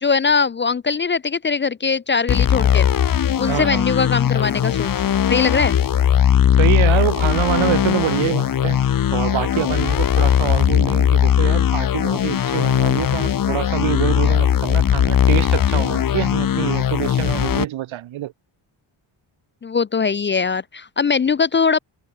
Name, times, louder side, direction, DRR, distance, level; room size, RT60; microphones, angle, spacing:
voice 1, 0.0-2.9 3.4-5.8 14.2-14.4 19.6-21.8, left 5 dB, 25° left, 0.4 m, -21 dB
sound 1, 2.3-17.7, left 9 dB, 45° left, 1.0 m, -18 dB
voice 2, 3.5-3.9 6.5-8.8 9.1-18.3, right 14 dB, 80° right, 1.2 m, -25 dB
cardioid pair, 110°, 46 cm